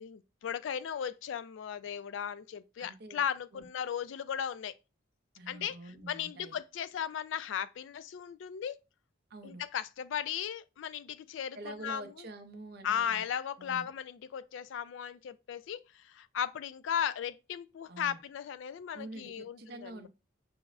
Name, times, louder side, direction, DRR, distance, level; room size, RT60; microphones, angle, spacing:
voice 1, 0.0-4.7 5.5-5.8 6.1-8.8 9.4-11.6 11.8-12.3 12.8-20.1, left 8 dB, 75° left, 0.3 m, -36 dB
voice 2, 2.8-3.2 3.5-3.7 5.4-6.6 9.3-9.6 11.5-13.3 13.6-13.9 17.9-18.2 18.9-20.1, right 2 dB, 55° right, 0.5 m, -46 dB
5.9 x 2.0 x 2.3 m
head